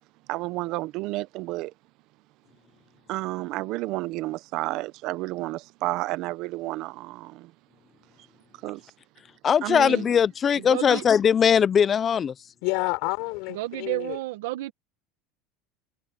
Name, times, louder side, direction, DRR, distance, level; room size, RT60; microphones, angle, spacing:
voice 1, 0.3-1.7 3.1-7.5 8.6-8.8 9.6-10.0, right 19 dB, 55° right, 0.5 m, -31 dB
voice 2, 9.4-12.3, left 7 dB, 25° left, 0.5 m, -20 dB
voice 3, 10.6-11.1 13.5-14.7, right 18 dB, 85° right, 1.3 m, -31 dB
voice 4, 12.6-14.2, left 29 dB, 65° left, 5.6 m, -29 dB
supercardioid pair, 145°, 0 cm